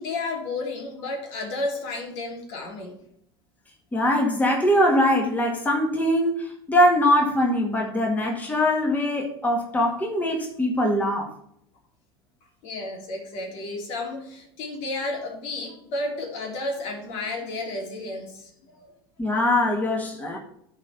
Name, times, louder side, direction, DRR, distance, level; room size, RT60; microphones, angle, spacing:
voice 1, 0.0-2.9 12.6-18.9, left 2 dB, 60° left, 2.9 m, -32 dB
voice 2, 3.9-11.3 19.2-20.4, left 1 dB, 15° left, 1.9 m, -22 dB
11.0 x 4.3 x 5.7 m
hypercardioid pair, 90°, 13 cm